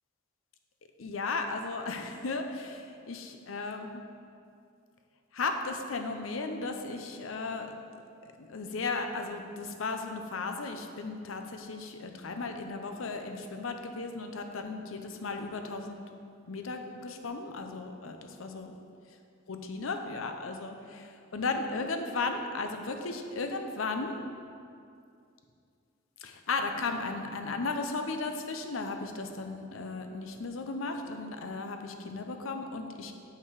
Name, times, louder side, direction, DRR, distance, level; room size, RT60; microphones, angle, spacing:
voice 1, 1.0-4.0 5.3-7.8 8.4-16.0 16.5-18.7 19.5-24.2 26.2-33.1, left 3 dB, 85° left, 6 dB, 0.6 m, -35 dB
6.7 x 5.6 x 4.8 m, 2.4 s
head